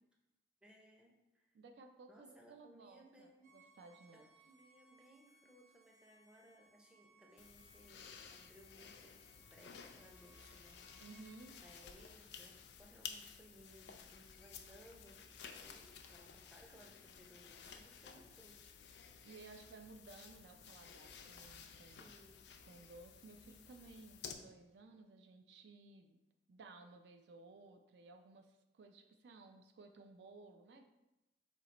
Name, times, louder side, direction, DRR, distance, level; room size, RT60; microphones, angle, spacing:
voice 1, 0.6-1.6 2.1-3.5 4.1-10.9 11.6-15.2 15.5-19.3 21.9-22.5, equal, 5° right, 0 dB, 0.5 m, -63 dB
voice 2, 1.5-4.3 11.0-11.6 19.2-22.1 22.7-26.2 26.5-30.9, right 3 dB, 70° right, 6 dB, 0.4 m, -58 dB
Bowed string instrument, 3.4-11.7, right 2 dB, 45° right, 0.8 m, -69 dB
sound 1, 7.4-24.3, left 7 dB, 65° left, 0.4 m, -55 dB
4.5 x 2.8 x 4.0 m, 0.96 s
head